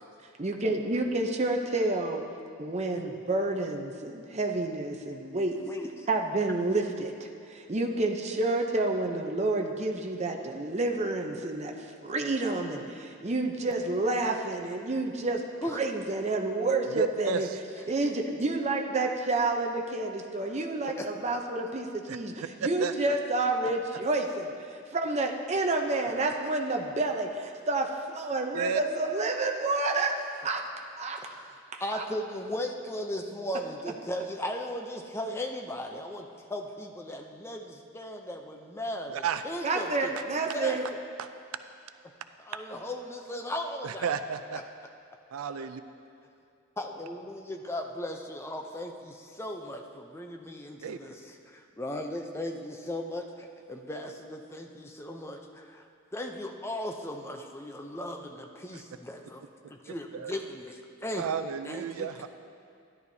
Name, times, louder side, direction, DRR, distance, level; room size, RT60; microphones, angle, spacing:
voice 1, 0.4-2.2 2.6-5.6 6.1-15.4 15.7-17.5 17.9-30.6 31.0-31.3 31.7-32.0 39.6-40.8, right 2 dB, 30° right, 2 dB, 0.7 m, -29 dB
voice 2, 5.6-6.1 15.6-15.8 17.4-17.5 17.8-18.2 20.5-20.6 20.9-21.4 26.1-26.2 31.2-31.5 31.8-40.8 42.4-44.1 45.6-45.7 46.8-55.9 56.1-61.2 61.6-62.1, left 1 dB, 10° left, 3 dB, 0.5 m, -37 dB
voice 3, 16.9-17.6 22.1-22.2 22.8-22.9 28.5-28.8 39.1-39.4 41.2-41.3 43.8-44.6 45.3-45.8 50.8-51.0 58.7-58.8 60.1-60.3 61.2-62.3, right 6 dB, 75° right, 10 dB, 0.4 m, -32 dB
13.0 x 11.0 x 2.8 m, 2.4 s
head